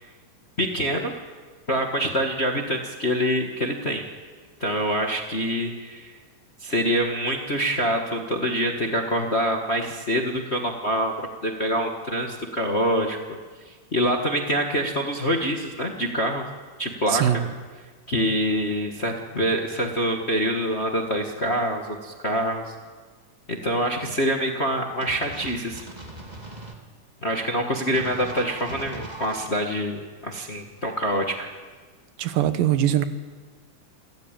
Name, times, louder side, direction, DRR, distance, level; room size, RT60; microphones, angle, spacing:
voice 1, 0.6-1.1 1.7-4.0 4.6-6.2 6.6-13.2 13.6-16.5 16.8-17.2 18.1-22.7 23.5-25.8 27.2-31.5, equal, 35° left, 2 dB, 1.1 m, -25 dB
voice 2, 17.1-17.4 32.2-33.1, right 11 dB, 85° right, 11 dB, 2.8 m, -21 dB
sound 1, 25.0-26.8 27.9-29.5, right 2 dB, 15° right, 1.9 m, -39 dB
28.0 x 14.5 x 9.0 m, 1.4 s
omnidirectional pair, 3.8 m